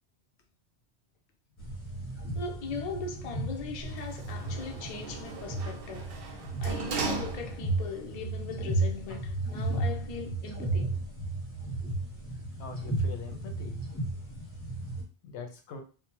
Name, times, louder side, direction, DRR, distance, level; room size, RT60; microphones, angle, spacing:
sound 1, 1.6-15.0, right 2 dB, 15° left, 0.7 m, -34 dB
voice 1, 2.3-11.0, left 4 dB, 55° left, 0.4 m, -40 dB
Sliding door, 3.8-7.9 8.3-8.4, right 4 dB, 65° right, 0.7 m, -38 dB
voice 2, 12.6-13.8 15.2-15.8, left 4 dB, 80° left, 0.9 m, -41 dB
2.6 x 2.0 x 2.9 m
omnidirectional pair, 1.1 m